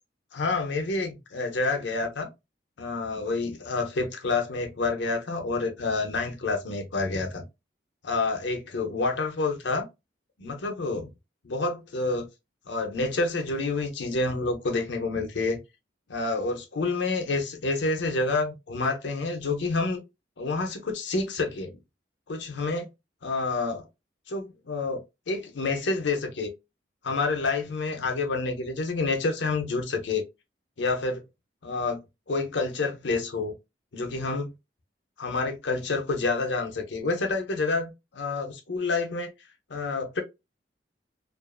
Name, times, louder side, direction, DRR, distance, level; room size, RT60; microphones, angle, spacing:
voice 1, 0.3-2.3 2.8-7.4 8.0-9.9 10.4-11.1 11.5-12.2 12.7-15.6 16.1-20.0 20.4-21.8 22.3-22.9 23.2-23.9 24.3-26.5 27.0-30.2 30.8-31.2 31.6-32.0 32.3-33.5 33.9-34.5 35.2-39.3 39.7-40.2, left 3 dB, 80° left, 0.7 m, -28 dB
2.5 x 2.4 x 2.2 m
head